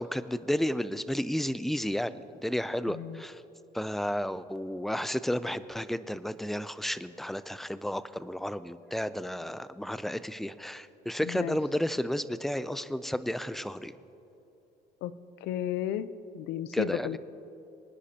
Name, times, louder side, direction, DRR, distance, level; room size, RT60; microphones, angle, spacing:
voice 1, 0.0-3.4 3.7-13.9 16.7-17.2, equal, ahead, 14 dB, 0.3 m, -32 dB
voice 2, 2.9-3.2 11.2-11.6 15.0-15.1 15.4-17.2, left 11 dB, 85° left, 15 dB, 0.5 m, -33 dB
24.0 x 10.0 x 2.8 m, 2.9 s
cardioid pair, 110°, 17 cm